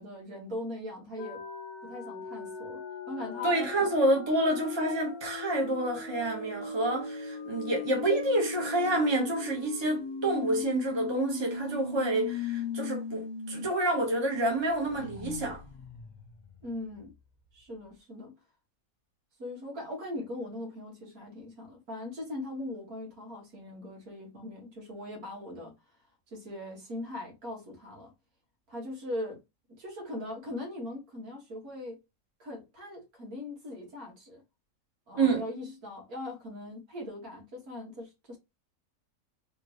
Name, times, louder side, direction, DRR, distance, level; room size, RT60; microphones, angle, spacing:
voice 1, 0.0-1.4 1.8-2.8 3.1-3.5 16.6-17.1 17.5-18.3 19.4-25.7 26.3-28.1 28.7-29.4 29.8-32.0 32.4-34.4 35.1-38.4, left 1 dB, 80° right, 2.2 m, -40 dB
sound 1, 1.2-13.7 14.0-14.1 14.5-17.2, left 5 dB, 50° left, 0.5 m, -39 dB
voice 2, 3.4-15.6 35.1-35.4, right 2 dB, 20° right, 1.2 m, -28 dB
4.2 x 3.1 x 2.9 m
omnidirectional pair, 1.5 m